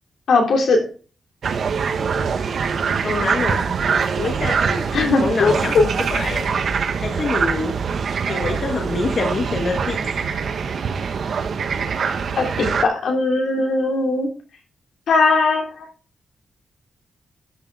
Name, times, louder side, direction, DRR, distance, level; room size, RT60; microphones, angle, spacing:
voice 1, 0.3-0.8 4.9-5.8 12.4-14.3 15.1-15.8, left 3 dB, 80° left, 1 dB, 3.4 m, -19 dB
sound 1, 1.4-12.9, right 6 dB, 60° right, 1.1 m, -23 dB
voice 2, 3.0-3.6 4.2-4.9 5.2-6.5 7.0-7.8 8.3-10.2, left 3 dB, 45° left, 2 dB, 1.7 m, -26 dB
12.5 x 6.1 x 4.9 m, 0.38 s
wide cardioid pair, 155°, 0 cm